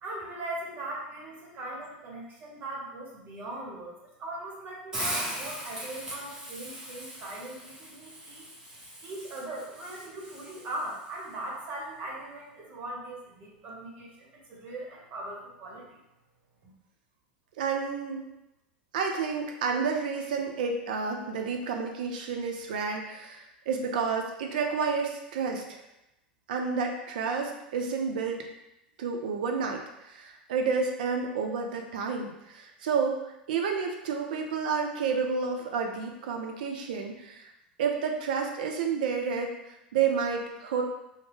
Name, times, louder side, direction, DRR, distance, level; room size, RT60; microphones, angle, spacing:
voice 1, 0.0-3.9 4.2-8.5 9.0-16.0, right 1 dB, 40° right, -3 dB, 1.0 m, -40 dB
Hiss, 4.9-11.0, equal, 15° right, 1.0 m, -39 dB
voice 2, 17.6-18.3 18.9-25.8 26.5-28.5 29.0-37.5 37.8-40.8, right 5 dB, 70° right, 3 dB, 0.5 m, -30 dB
2.7 x 2.1 x 3.3 m, 0.90 s
hypercardioid pair, 90°, 5 cm